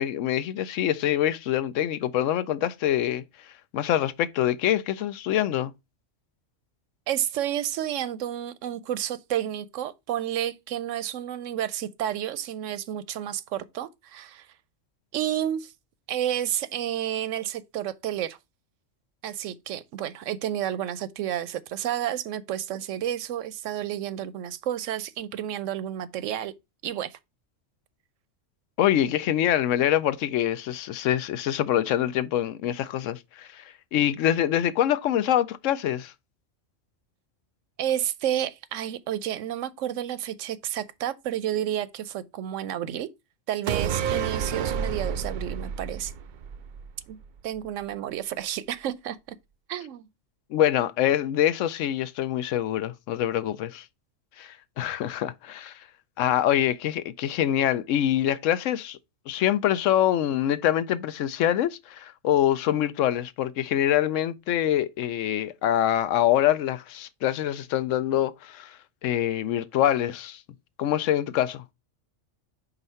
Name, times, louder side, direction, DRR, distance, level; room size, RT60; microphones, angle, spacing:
voice 1, 0.0-3.2 3.7-5.7 28.8-36.1 50.5-53.8 54.4-55.8 56.2-59.0 59.3-70.4 70.8-71.6, left 11 dB, 80° left, 0.9 m, -25 dB
voice 2, 7.1-14.5 15.1-15.7 16.1-18.4 19.2-26.5 26.8-27.2 37.8-43.1 43.5-46.1 47.1-47.2 47.4-49.4 49.7-50.1, right 11 dB, 80° right, 0.9 m, -30 dB
sound 1, 43.7-47.2 47.6-47.7, right 7 dB, 65° right, 0.5 m, -30 dB
4.9 x 4.0 x 5.4 m
omnidirectional pair, 1.3 m